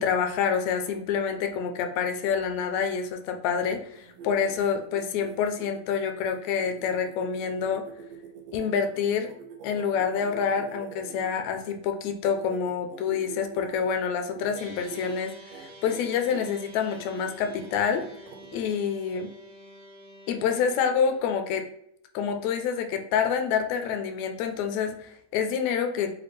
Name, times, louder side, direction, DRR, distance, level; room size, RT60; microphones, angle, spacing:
voice 1, 0.0-7.9 8.5-9.3 9.6-18.0 18.5-19.3 20.3-21.7 22.1-26.1, left 7 dB, 80° left, 6 dB, 1.8 m, -27 dB
sound 1, 3.9-11.7 12.2-13.9 14.3-14.6 14.9-15.2 15.5-16.5 16.9-18.7, right 6 dB, 85° right, 1.3 m, -45 dB
sound 2, 14.5-21.2, equal, 65° right, 1.3 m, -48 dB
5.9 x 2.4 x 3.1 m, 0.72 s
omnidirectional pair, 3.3 m